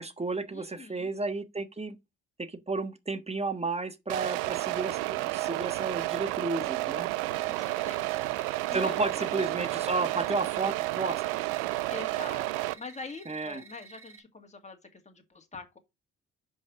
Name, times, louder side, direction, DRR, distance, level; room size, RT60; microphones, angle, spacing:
voice 1, 0.0-2.0 2.4-7.1 8.7-11.2 13.3-13.6, right 3 dB, 20° right, 1.3 m, -32 dB
voice 2, 0.5-1.1 7.3-9.5 11.9-15.8, left 4 dB, 20° left, 2.0 m, -44 dB
sound 1, 4.1-12.7, right 20 dB, 85° right, 0.5 m, -31 dB
sound 2, 7.3-14.2, right 5 dB, 40° right, 1.9 m, -52 dB
5.4 x 5.2 x 6.2 m
hypercardioid pair, 50°, 32 cm